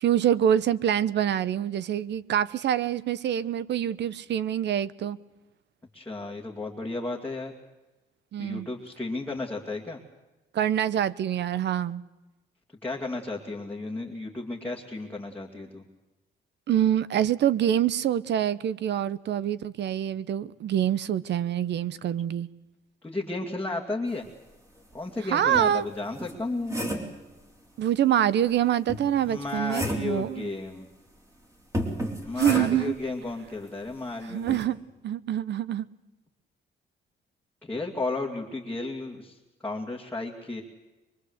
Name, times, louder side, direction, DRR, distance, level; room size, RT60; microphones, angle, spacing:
voice 1, 0.0-5.2 8.3-8.7 10.5-12.0 16.7-22.5 25.3-25.9 27.8-30.5 32.4-32.9 34.3-34.8 35.0-35.9, right 10 dB, 60° right, 1.0 m, -25 dB
voice 2, 5.9-7.5 8.4-10.0 12.8-15.9 23.0-24.2 24.9-26.8 29.3-30.9 32.2-34.6 37.6-40.6, left 2 dB, 10° left, 2.4 m, -33 dB
sound 1, 24.9-25.0 25.5-27.2 28.9-30.2 31.7-33.0 34.5-34.7, equal, 15° right, 4.0 m, -32 dB
24.5 x 23.5 x 8.1 m
cardioid pair, 160°, 20 cm